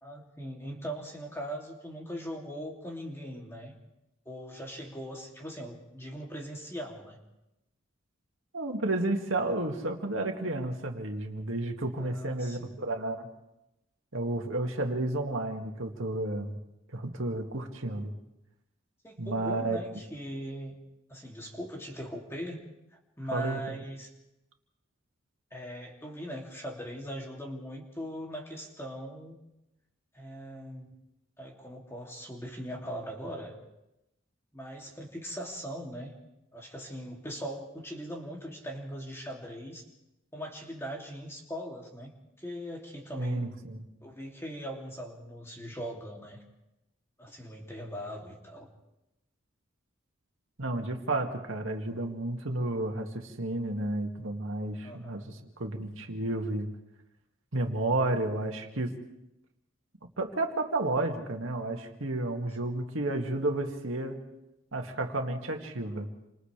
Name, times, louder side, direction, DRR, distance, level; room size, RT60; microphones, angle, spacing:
voice 1, 0.0-3.7 4.2-7.2 12.0-12.9 14.6-14.7 19.0-20.8 21.1-24.1 25.5-29.3 30.1-30.9 31.4-33.5 34.5-36.2 36.5-39.8 40.3-43.4 44.0-46.4 47.2-48.7 54.8-55.3, equal, 10° left, -1 dB, 2.8 m, -40 dB
voice 2, 8.5-13.3 14.1-16.6 16.9-18.1 19.2-19.8 23.3-23.6 43.2-43.8 50.6-55.2 55.6-56.7 57.5-58.9 60.2-64.2 64.7-66.1, right 2 dB, 75° right, 3 dB, 2.3 m, -31 dB
29.5 x 26.0 x 3.4 m, 0.89 s
head